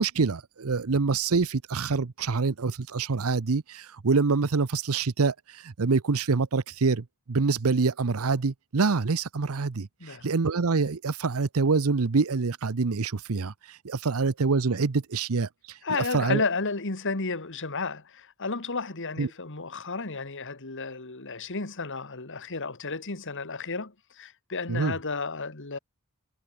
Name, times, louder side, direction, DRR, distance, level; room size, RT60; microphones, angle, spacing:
voice 1, 0.0-5.3 5.6-13.5 13.8-15.5 16.1-16.4 19.2-19.3 24.7-24.9, right 4 dB, 70° right, 0.7 m, -26 dB
voice 2, 15.8-25.8, left 4 dB, 60° left, 2.2 m, -32 dB
head